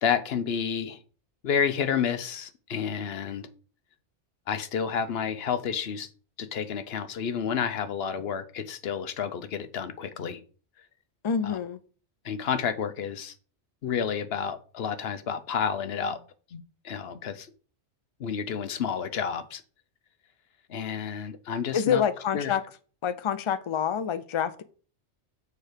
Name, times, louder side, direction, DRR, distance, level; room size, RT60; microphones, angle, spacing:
voice 1, 0.0-1.0 1.4-3.5 4.5-6.1 6.4-10.4 11.4-11.6 12.2-13.3 13.8-16.2 16.5-17.5 18.2-19.6 20.7-22.0 22.3-22.5, left 7 dB, 60° left, 0.9 m, -30 dB
voice 2, 11.2-11.8 21.7-22.6 23.0-24.6, left 8 dB, 45° left, 0.4 m, -27 dB
6.8 x 4.6 x 5.0 m
omnidirectional pair, 1.2 m